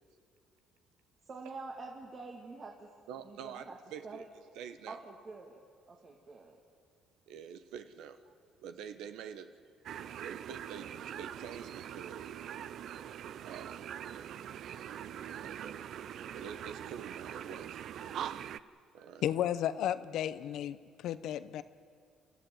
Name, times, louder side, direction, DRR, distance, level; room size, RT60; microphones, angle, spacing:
voice 1, 1.2-2.9 3.2-3.8 4.0-4.3 4.9-5.6 5.9-6.6, right 3 dB, 40° right, -1 dB, 2.4 m, -46 dB
voice 2, 3.1-4.3 4.5-5.0 7.3-8.3 8.6-9.5 10.2-12.2 13.0-13.1 13.4-13.9 15.4-16.0 16.3-17.8 18.9-19.2, right 8 dB, 80° right, 9 dB, 1.1 m, -47 dB
sound 1, 9.9-18.6, right 9 dB, 65° right, 0.6 m, -43 dB
voice 3, 19.2-21.6, left 11 dB, 70° left, 14 dB, 0.9 m, -33 dB
28.5 x 13.5 x 9.3 m, 2.2 s
cardioid pair, 90°, 0 cm